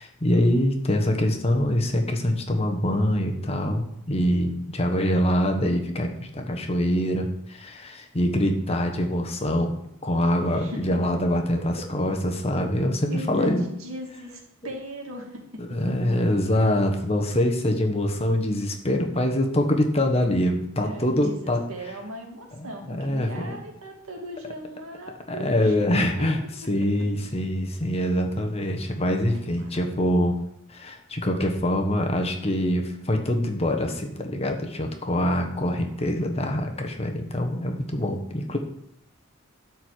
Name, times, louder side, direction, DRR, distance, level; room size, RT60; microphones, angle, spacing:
voice 1, 0.0-9.7 10.0-13.6 15.6-21.6 22.6-23.6 25.3-26.4 26.7-30.4 30.7-38.6, left 1 dB, 30° left, 3 dB, 1.2 m, -24 dB
voice 2, 10.5-11.1 11.5-11.6 13.1-16.0 20.8-25.7 26.2-26.3 26.8-26.9 27.2-27.3 29.6-29.7, equal, 80° right, 2 dB, 2.4 m, -38 dB
12.0 x 4.6 x 8.2 m, 0.78 s
head